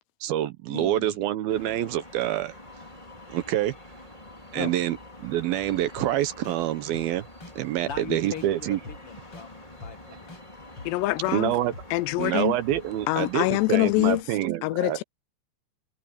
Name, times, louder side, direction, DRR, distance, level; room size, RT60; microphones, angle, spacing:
voice 1, 0.2-2.5 3.3-3.7 4.5-7.2 7.6-8.8 11.3-11.7 12.2-15.0, right 13 dB, 75° right, 2.3 m, -27 dB
sound 1, 1.5-14.2, left 1 dB, 10° left, 4.7 m, -46 dB
sound 2, 6.0-6.1 6.4-6.6 6.9-7.1 7.4-7.5 7.9-8.0 8.4-8.5 8.8-9.0 9.3-9.5 9.8-9.9 10.3-10.4 10.8-10.9 11.2-11.4 11.7-11.9 12.2-12.3 12.7-12.8 13.2-13.3, left 2 dB, 25° left, 7.0 m, -42 dB
voice 2, 7.8-10.3, left 7 dB, 60° left, 1.5 m, -40 dB
voice 3, 10.9-11.5 11.9-12.6 13.1-14.2 14.6-15.0, left 21 dB, 85° left, 2.5 m, -25 dB
omnidirectional pair, 5.2 m